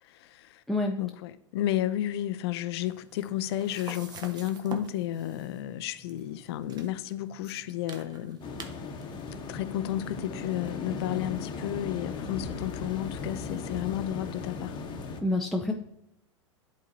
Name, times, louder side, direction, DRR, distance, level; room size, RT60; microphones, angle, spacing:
voice 1, 0.0-0.6 1.0-8.4 9.5-14.8, left 13 dB, 55° left, 0.5 m, -32 dB
voice 2, 0.7-1.0 15.2-15.7, left 2 dB, ahead, 0.4 m, -27 dB
sound 1, 2.8-11.1, right 4 dB, 25° right, 0.8 m, -48 dB
sound 2, 8.4-15.2, left 4 dB, 30° left, 0.9 m, -37 dB
10.5 x 3.8 x 2.7 m
figure-of-eight pair, 95°, 16 cm